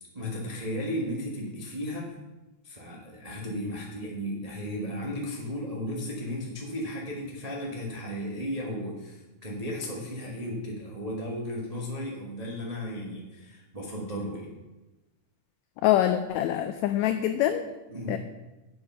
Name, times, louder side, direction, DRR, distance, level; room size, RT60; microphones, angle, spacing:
voice 1, 0.1-2.1 2.6-14.5 17.9-18.2, equal, 65° right, -3 dB, 0.3 m, -35 dB
voice 2, 15.8-17.7 18.1-18.2, left 12 dB, 80° left, 8 dB, 1.7 m, -25 dB
8.0 x 7.8 x 5.7 m, 1.1 s
omnidirectional pair, 3.4 m